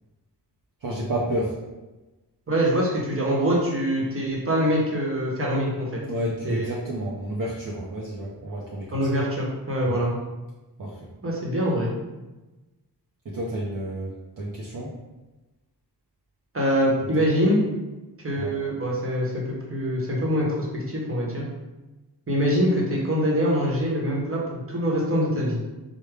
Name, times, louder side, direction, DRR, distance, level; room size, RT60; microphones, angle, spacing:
voice 1, 0.8-1.5 6.1-9.0 9.8-10.0 10.8-11.1 13.2-14.9 17.2-17.3 18.4-18.5, right 1 dB, 50° right, -4 dB, 0.7 m, -30 dB
voice 2, 2.5-6.0 6.4-6.6 8.9-10.1 11.2-11.9 16.5-17.6 18.2-21.5 22.3-25.6, equal, 30° right, -3 dB, 1.1 m, -24 dB
3.5 x 2.2 x 3.3 m, 1.1 s
cardioid pair, 50°, 42 cm